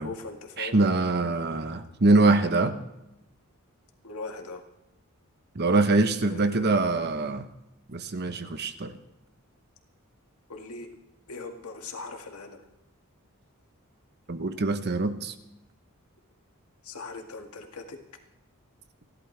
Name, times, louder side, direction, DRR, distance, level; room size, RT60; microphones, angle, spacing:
voice 1, 0.0-0.8 4.0-4.6 6.2-6.8 10.5-10.9 11.3-12.6 16.8-18.0, left 3 dB, 80° left, 3 dB, 2.0 m, -39 dB
voice 2, 0.6-2.8 5.5-7.5 7.9-9.0 14.3-15.3, right 2 dB, 50° right, 9 dB, 1.0 m, -24 dB
30.0 x 12.0 x 3.4 m, 0.88 s
head